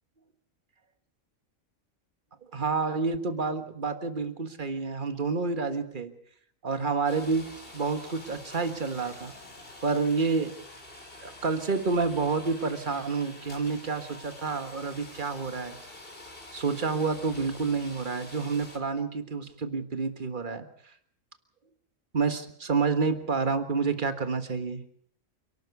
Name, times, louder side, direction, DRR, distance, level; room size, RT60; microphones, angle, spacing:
voice 1, 2.5-6.1 6.6-7.5 7.7-9.3 9.8-10.5 11.2-15.8 16.5-20.7 22.1-24.8, right 4 dB, 40° right, 9 dB, 1.7 m, -29 dB
sound 1, 7.1-18.8, left 2 dB, 45° left, 3.7 m, -47 dB
28.0 x 12.5 x 8.3 m, 0.65 s
omnidirectional pair, 1.4 m